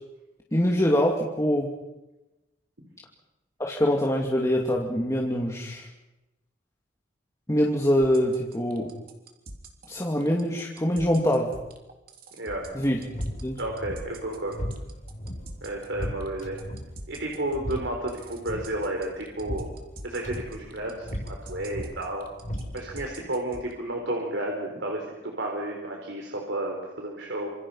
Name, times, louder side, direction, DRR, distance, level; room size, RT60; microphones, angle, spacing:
voice 1, 0.5-1.7 3.6-5.9 7.5-8.9 9.9-11.5 12.7-13.0 13.4-13.6, equal, 15° left, -1 dB, 2.6 m, -24 dB
sound 1, 8.0-23.7, right 2 dB, 55° right, 3.5 m, -44 dB
voice 2, 12.4-12.7 13.6-14.6 15.6-16.6 17.1-19.7 20.0-22.3 22.7-27.5, right 1 dB, 85° right, 1 dB, 4.4 m, -32 dB
sound 2, 12.6-23.1, equal, 45° left, 7.0 m, -38 dB
27.5 x 27.5 x 5.8 m, 1.0 s
head